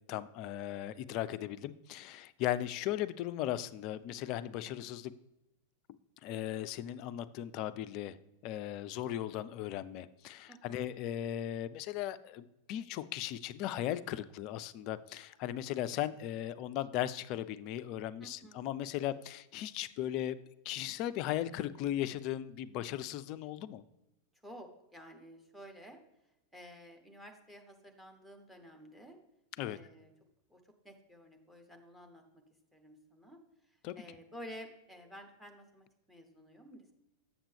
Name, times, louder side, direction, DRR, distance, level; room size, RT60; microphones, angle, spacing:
voice 1, 0.1-5.1 6.2-8.2 8.4-20.4 20.6-23.8 29.6-29.8 33.8-34.0, left 12 dB, 40° left, 14 dB, 0.3 m, -37 dB
voice 2, 10.5-10.8 18.2-18.6 24.4-26.0 26.5-29.2 29.6-30.1 30.5-32.4 32.7-33.4 34.0-36.9, equal, 5° right, 5 dB, 1.0 m, -52 dB
7.2 x 7.1 x 3.4 m, 0.94 s
figure-of-eight pair, 90°, 0 cm